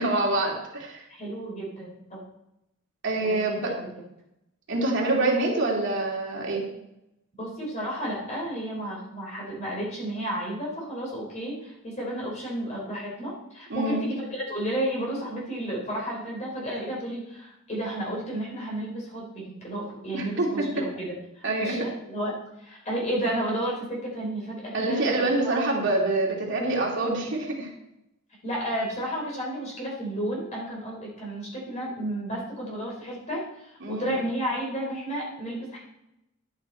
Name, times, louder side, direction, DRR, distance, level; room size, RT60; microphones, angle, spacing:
voice 1, 0.0-1.0 3.0-3.7 4.7-6.6 13.7-14.0 20.1-20.7 21.4-21.8 24.7-27.7 33.8-34.1, right 2 dB, 60° right, -1 dB, 2.7 m, -26 dB
voice 2, 1.1-2.2 3.2-3.9 7.4-25.1 28.4-35.8, right 1 dB, 35° left, -3 dB, 3.7 m, -32 dB
11.0 x 8.8 x 4.4 m, 0.84 s
head